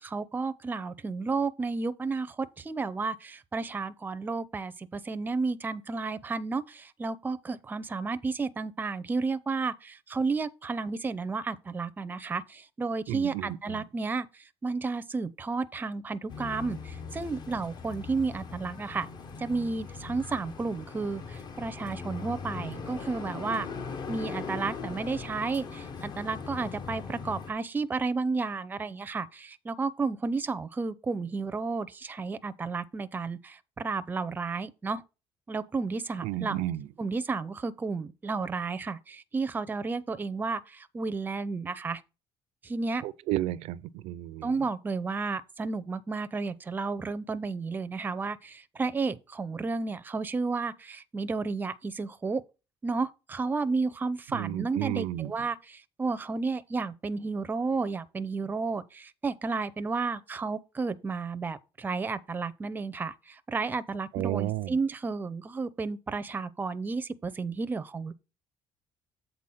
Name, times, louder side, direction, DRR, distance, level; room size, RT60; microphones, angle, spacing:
voice 1, 0.0-19.1 19.4-23.7 24.1-35.0 35.5-36.6 37.0-42.0 42.6-43.0 44.4-52.4 52.8-68.1, right 4 dB, 15° right, 0.5 m, -32 dB
voice 2, 13.1-13.6 36.2-36.8 43.0-44.5 54.3-55.3 64.1-64.7, right 15 dB, 80° right, 0.4 m, -32 dB
sound 1, 16.3-27.5, left 5 dB, 40° left, 0.9 m, -40 dB
7.6 x 4.1 x 5.6 m
cardioid pair, 125°, 11 cm